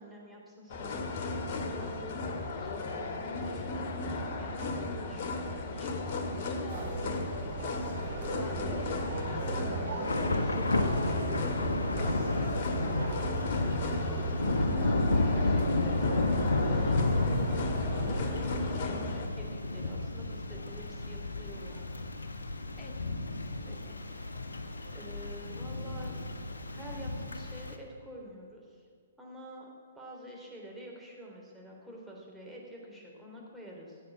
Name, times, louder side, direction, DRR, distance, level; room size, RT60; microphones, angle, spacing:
voice 1, 0.0-5.4 5.7-6.4 8.4-13.4 13.7-22.1 24.6-26.1 26.7-28.9 29.2-29.7 29.9-34.0, equal, ahead, -4 dB, 3.9 m, -48 dB
sound 1, 0.7-19.3, left 3 dB, 50° left, 1.9 m, -36 dB
voice 2, 6.6-8.0 22.8-23.0 23.6-24.0, left 2 dB, 20° left, 3 dB, 2.2 m, -49 dB
sound 2, 6.7-18.6, right 2 dB, 70° right, 3.6 m, -36 dB
Thunder / Rain, 10.0-27.7, left 2 dB, 80° left, 1.3 m, -32 dB
16.5 x 8.6 x 7.6 m, 2.2 s
figure-of-eight pair, 125°, 0 cm